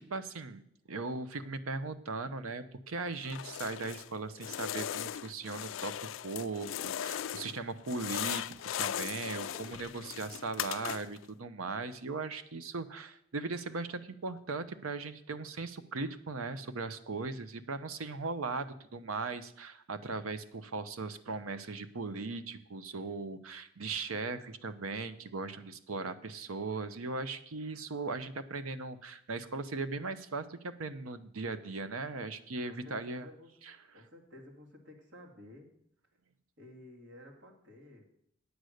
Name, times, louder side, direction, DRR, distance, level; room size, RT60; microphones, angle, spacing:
voice 1, 0.0-8.4 8.8-33.3, right 3 dB, 85° right, 12 dB, 0.8 m, -38 dB
sound 1, 3.2-4.1 4.4-7.6 7.8-11.3, left 10 dB, 65° left, 0.3 m, -38 dB
voice 2, 32.6-33.5 33.9-35.7 36.6-38.1, left 1 dB, 55° right, 1 dB, 2.1 m, -53 dB
9.5 x 8.0 x 6.4 m, 0.71 s
head